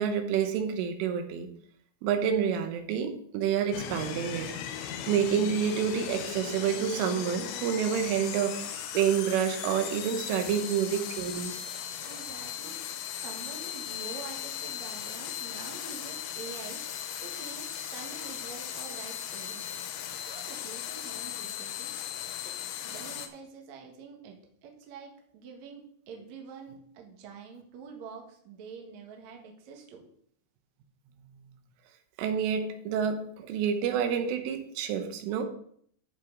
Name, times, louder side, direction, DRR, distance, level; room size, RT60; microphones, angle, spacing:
voice 1, 0.0-1.5 2.0-4.5 5.1-11.5 32.2-35.4, right 8 dB, 85° right, 6 dB, 3.6 m, -28 dB
sound 1, 3.7-23.3, left 9 dB, 80° left, 3.2 m, -37 dB
voice 2, 12.0-12.8 13.2-16.8 17.2-19.7 20.3-21.9 22.4-30.1, right 5 dB, 55° right, 1 dB, 2.1 m, -46 dB
13.5 x 5.8 x 3.9 m, 0.64 s
omnidirectional pair, 5.5 m